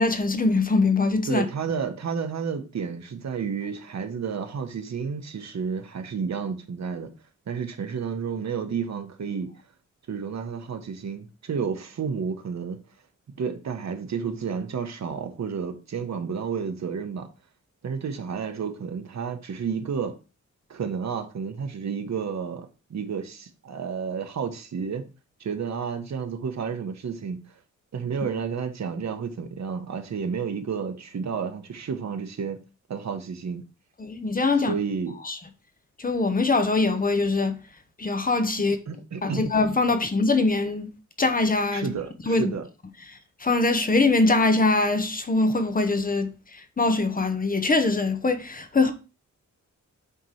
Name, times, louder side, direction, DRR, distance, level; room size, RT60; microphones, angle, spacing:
voice 1, 0.0-1.4 34.0-34.8 35.2-35.4 36.0-37.6 38.0-38.8 39.2-40.9 41.2-41.9 42.3-42.5 43.1-48.9, left 3 dB, 30° left, 0.8 m, -23 dB
voice 2, 1.3-7.1 7.5-9.5 10.1-12.8 13.4-17.3 17.8-20.1 20.7-25.1 25.4-27.4 27.9-32.6 32.9-33.6 34.7-35.1 38.9-39.5 41.7-42.7, right 6 dB, 60° right, 1.1 m, -31 dB
8.2 x 3.1 x 5.7 m
wide cardioid pair, 160°, 30 cm